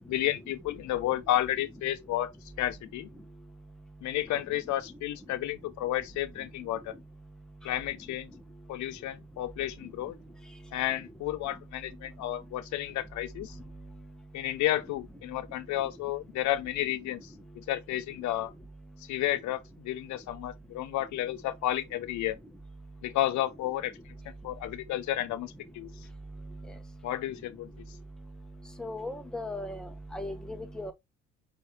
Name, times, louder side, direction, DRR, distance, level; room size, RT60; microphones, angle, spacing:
voice 1, 0.0-2.3 2.6-3.1 4.0-6.9 7.6-8.3 8.7-10.1 10.7-13.6 14.3-18.5 19.0-22.4 23.0-23.9 24.4-25.9 27.0-27.7, left 13 dB, 70° left, 0.5 m, -32 dB
voice 2, 28.8-29.9 30.1-30.9, left 1 dB, ahead, 0.7 m, -37 dB
4.9 x 3.1 x 2.8 m
cardioid pair, 115°, 30 cm